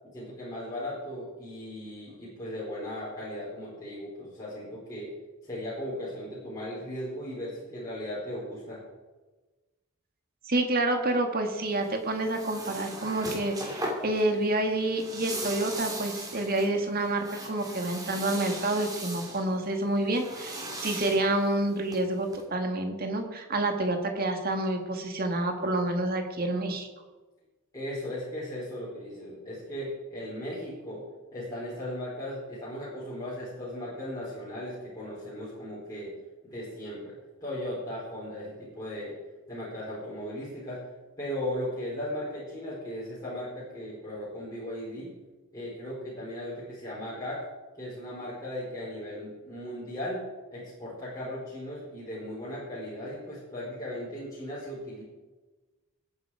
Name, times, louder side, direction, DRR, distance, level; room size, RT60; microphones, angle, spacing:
voice 1, 0.1-5.1 5.4-8.8 27.7-31.0 31.3-36.1 36.4-39.2 39.5-40.8 41.2-45.2 45.5-47.4 47.8-50.2 50.5-55.0, left 1 dB, 15° left, -8 dB, 4.3 m, -37 dB
voice 2, 10.5-26.9, right 2 dB, 45° right, 4 dB, 1.9 m, -28 dB
sound 1, 11.6-22.4, right 1 dB, 15° right, 2.6 m, -39 dB
19.0 x 8.9 x 4.9 m, 1.2 s
head